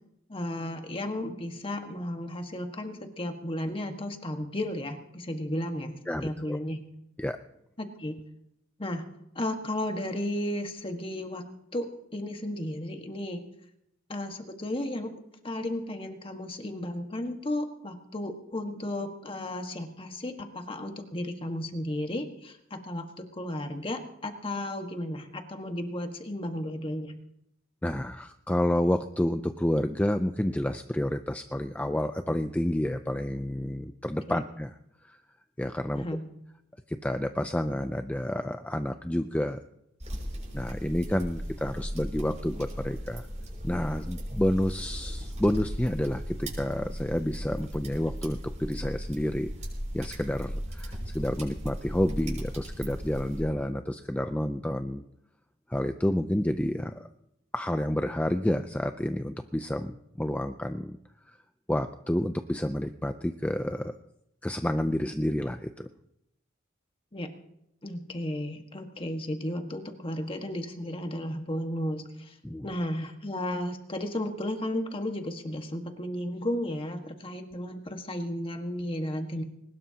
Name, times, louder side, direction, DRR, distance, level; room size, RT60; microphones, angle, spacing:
voice 1, 0.3-6.0 6.2-6.8 7.8-8.2 8.8-9.1 9.3-11.4 11.7-13.4 14.1-15.1 15.4-27.2 34.3-34.4 35.9-36.3 67.1-67.3 67.8-72.4 72.6-79.4, left 1 dB, 30° left, 5 dB, 1.6 m, -34 dB
voice 2, 6.1-6.6 7.2-7.4 27.8-34.7 35.1-35.2 35.6-36.0 36.9-39.6 40.5-43.3 43.6-49.5 49.9-55.0 55.7-57.1 57.5-61.0 61.3-61.4 61.7-63.9 64.4-65.9 72.4-72.7, left 1 dB, 5° left, 8 dB, 0.5 m, -29 dB
sound 1, 40.0-53.4, equal, 35° right, 6.1 m, -37 dB
21.5 x 20.0 x 2.9 m, 0.80 s
head